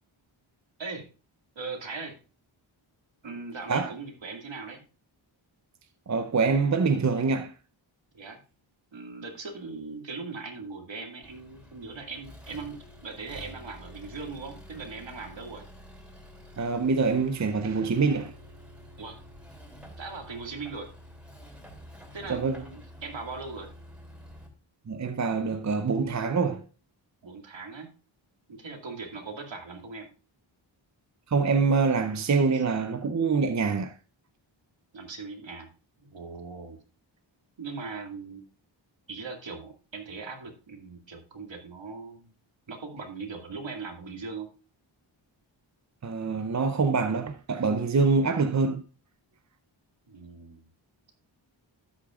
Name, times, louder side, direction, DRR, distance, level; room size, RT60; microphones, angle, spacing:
voice 1, 1.6-2.2 3.2-4.8 8.1-8.4 8.9-12.8 13.0-15.6 19.0-19.2 20.0-20.9 22.1-23.7 27.2-27.9 28.5-30.1 34.9-35.7 36.0-36.8 37.6-38.4 39.1-42.3 42.7-44.5 50.1-50.7, right 4 dB, 65° right, 2.3 m, -39 dB
voice 2, 6.1-7.5 16.6-18.3 22.3-22.6 24.9-26.6 31.3-33.9 46.0-48.9, right 4 dB, 35° right, 0.6 m, -25 dB
Accelerating revving vroom, 11.2-24.5, equal, ahead, 2.9 m, -48 dB
12.5 x 8.3 x 2.4 m
wide cardioid pair, 90°, 48 cm